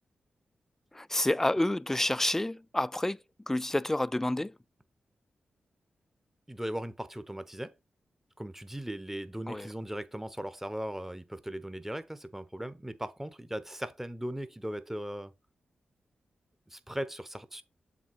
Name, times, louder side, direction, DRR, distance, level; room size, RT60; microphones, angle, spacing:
voice 1, 0.9-3.2 3.5-4.6 9.5-9.7, left 1 dB, 10° left, 0.3 m, -29 dB
voice 2, 6.5-7.7 8.4-15.3 16.7-17.6, right 1 dB, 10° right, 0.9 m, -38 dB
7.2 x 3.4 x 4.6 m
cardioid pair, 60°, 3 cm